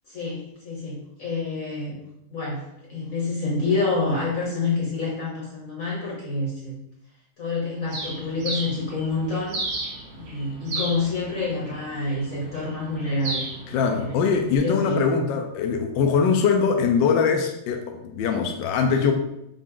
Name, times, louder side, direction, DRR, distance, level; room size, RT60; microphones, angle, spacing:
voice 1, 0.1-2.0 2.3-6.8 7.4-9.6 10.1-14.3 14.6-15.2, left 3 dB, 50° left, -5 dB, 1.3 m, -28 dB
Bird, 7.9-14.6, right 2 dB, 80° right, 2.2 m, -35 dB
voice 2, 13.7-19.1, left 6 dB, 75° left, 3 dB, 1.2 m, -22 dB
5.7 x 2.5 x 3.7 m, 0.82 s
omnidirectional pair, 2.1 m